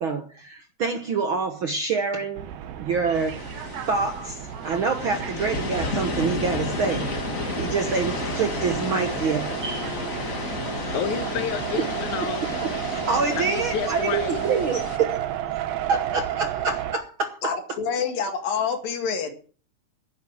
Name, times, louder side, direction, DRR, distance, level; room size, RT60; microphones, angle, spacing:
voice 1, 0.0-2.5 2.8-3.5 3.9-7.2 7.6-9.9 10.7-10.8 12.6-15.2 15.9-17.8, right 5 dB, 75° right, 1.2 m, -26 dB
sound 1, 2.4-17.0, right 11 dB, 90° right, 2.8 m, -32 dB
sound 2, 3.1-15.0, left 3 dB, 30° left, 1.6 m, -32 dB
Wind instrument woodwind instrument, 7.1-13.6, left 2 dB, 15° right, 1.9 m, -46 dB
voice 2, 10.9-12.5 12.9-13.0 13.3-14.9, left 8 dB, 65° left, 2.6 m, -31 dB
voice 3, 17.4-19.3, left 6 dB, 80° left, 3.7 m, -27 dB
11.0 x 9.3 x 7.7 m
omnidirectional pair, 4.0 m